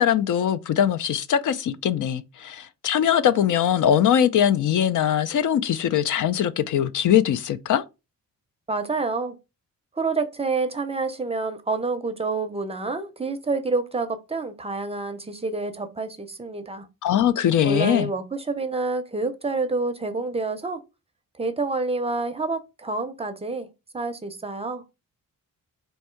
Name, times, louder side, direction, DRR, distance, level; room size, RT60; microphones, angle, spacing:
voice 1, 0.0-7.8 17.0-18.1, left 9 dB, 65° left, 0.5 m, -21 dB
voice 2, 8.7-9.4 10.0-16.9 17.6-20.8 21.3-23.7 23.9-24.8, right 3 dB, 20° right, 0.5 m, -28 dB
4.5 x 2.7 x 4.4 m
wide cardioid pair, 145°, 34 cm